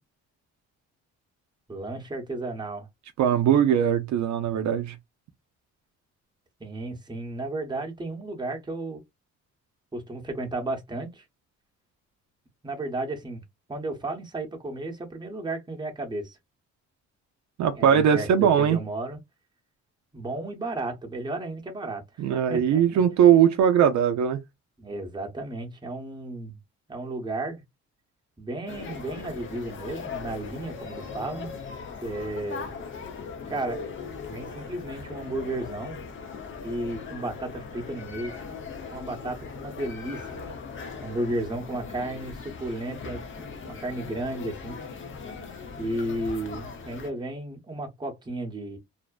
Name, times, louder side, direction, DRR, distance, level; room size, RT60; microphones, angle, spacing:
voice 1, 1.7-2.9 6.6-9.0 9.9-11.2 12.6-13.4 13.7-16.4 17.7-19.2 20.1-23.0 24.8-26.6 26.9-27.6 28.4-31.5 32.0-32.7 33.5-33.8 34.3-36.0 36.6-38.3 38.9-40.6 41.0-44.8 45.8-48.8, right 2 dB, 15° right, 0.9 m, -33 dB
voice 2, 3.2-4.9 17.6-18.8 22.2-24.4, right 9 dB, 70° right, 0.5 m, -20 dB
sound 1, 28.7-47.1, left 5 dB, 40° left, 0.6 m, -39 dB
2.6 x 2.1 x 2.3 m
cardioid pair, 90°, 30 cm